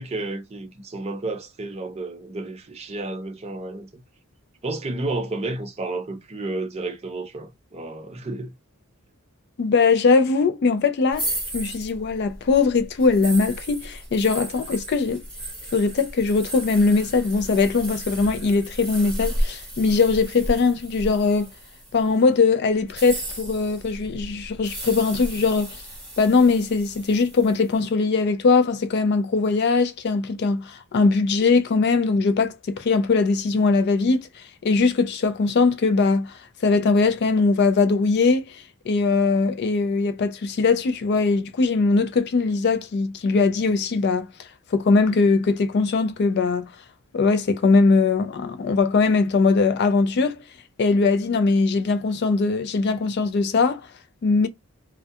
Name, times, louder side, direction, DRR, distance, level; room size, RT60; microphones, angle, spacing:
voice 1, 0.0-3.9 4.6-8.5, right 2 dB, 30° right, 0.5 m, -31 dB
voice 2, 9.6-11.3 11.5-15.2 15.7-21.5 21.9-25.8 26.2-34.3 34.6-44.3 44.7-46.7 47.1-50.4 50.8-53.9 54.2-54.5, left 4 dB, 50° left, 0.3 m, -21 dB
sound 1, 11.1-22.1 22.8-27.7, right 1 dB, 5° left, 1.0 m, -34 dB
2.3 x 2.2 x 2.7 m
head